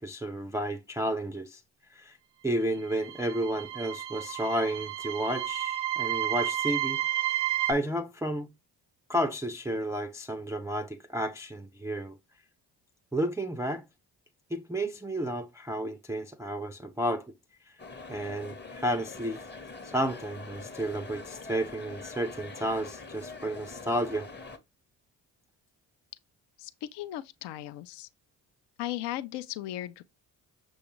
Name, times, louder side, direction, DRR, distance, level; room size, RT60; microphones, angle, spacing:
voice 1, 0.0-1.6 1.9-2.2 2.4-7.0 7.7-8.5 9.1-12.2 13.1-13.8 14.5-17.3 18.1-19.4 19.9-24.3, right 1 dB, 5° right, 0.4 m, -32 dB
sound 1, 2.8-7.7, right 13 dB, 80° right, 0.7 m, -31 dB
sound 2, 17.8-24.6, left 3 dB, 20° left, 0.8 m, -44 dB
voice 2, 26.6-28.1 28.8-30.0, left 14 dB, 60° left, 0.5 m, -37 dB
6.2 x 2.3 x 3.0 m
hypercardioid pair, 45°, 49 cm